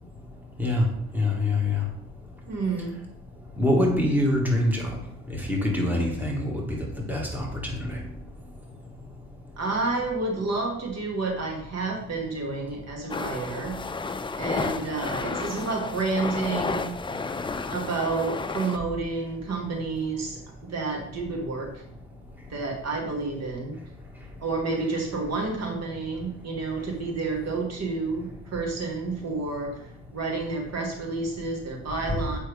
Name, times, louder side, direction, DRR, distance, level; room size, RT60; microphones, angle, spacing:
voice 1, 0.1-2.5 3.3-9.6 17.1-17.7 22.1-22.5 24.0-24.4 26.8-26.9 32.1-32.3, left 1 dB, 5° right, -1 dB, 1.9 m, -28 dB
voice 2, 2.5-2.9 9.6-13.8 14.4-16.9 17.7-21.7 22.5-23.8 24.4-32.4, right 3 dB, 55° right, 2 dB, 1.7 m, -30 dB
sound 1, 13.1-18.8, left 4 dB, 15° left, 0.4 m, -32 dB
7.4 x 5.5 x 3.5 m, 0.78 s
cardioid pair, 90°, 30 cm